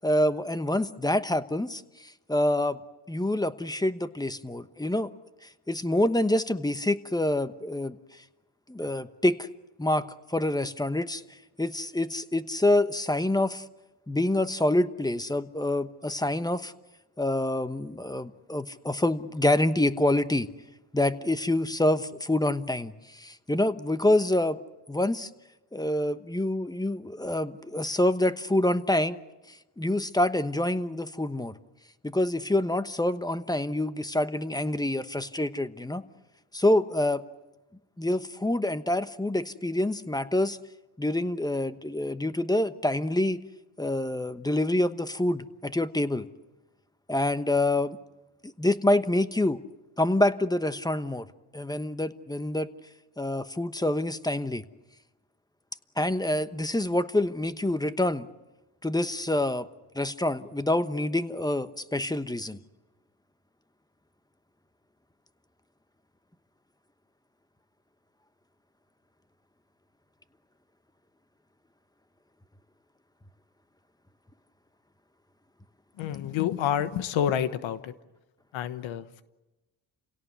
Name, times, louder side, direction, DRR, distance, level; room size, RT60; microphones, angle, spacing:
voice 1, 0.0-2.8 3.1-5.1 5.7-8.0 8.7-9.5 9.8-11.2 11.6-13.6 14.1-16.7 17.2-20.5 20.9-24.6 24.9-25.3 25.7-29.2 29.5-31.5 32.0-36.0 36.5-37.2 38.0-40.6 41.0-43.4 43.8-46.3 47.1-48.0 48.4-49.6 50.0-51.3 51.5-52.7 53.2-54.6 56.0-58.3 58.8-59.7 59.9-62.6, left 1 dB, 10° left, 12 dB, 1.0 m, -26 dB
voice 2, 76.0-77.9 78.5-79.2, left 10 dB, 85° left, 12 dB, 1.3 m, -28 dB
28.5 x 17.5 x 8.1 m, 1.1 s
cardioid pair, 85°, 45 cm